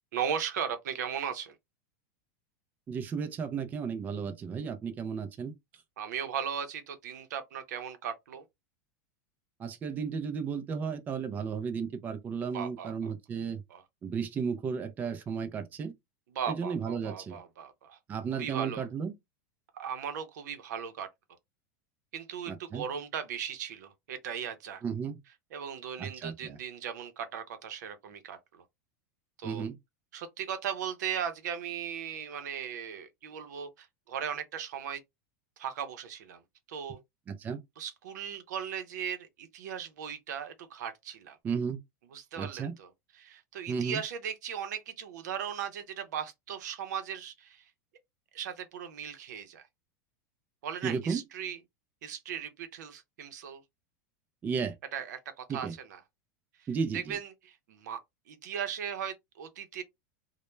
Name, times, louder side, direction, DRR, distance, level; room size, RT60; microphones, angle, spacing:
voice 1, 0.1-1.6 6.0-8.4 12.5-13.1 13.7-13.8 16.3-18.0 18.3-18.9 19.7-21.1 22.1-24.8 25.5-28.6 29.4-29.7 30.1-35.0 35.6-36.4 36.7-37.0 37.8-41.4 42.0-47.7 48.3-49.7 50.6-51.6 52.0-53.6 54.9-56.0 56.6-56.7 56.9-58.0 58.3-59.8, right 8 dB, 85° right, 0.6 m, -37 dB
voice 2, 2.9-5.5 9.6-13.6 14.0-15.9 16.6-17.4 18.1-19.1 22.5-22.8 24.8-25.2 26.0-26.6 29.4-29.8 37.3-37.6 41.4-41.8 42.4-42.8 43.7-44.0 50.8-51.2 54.4-54.7 55.5-55.7 56.7-57.0, right 6 dB, 20° right, 0.3 m, -34 dB
2.1 x 2.1 x 3.0 m
supercardioid pair, 145°, 9 cm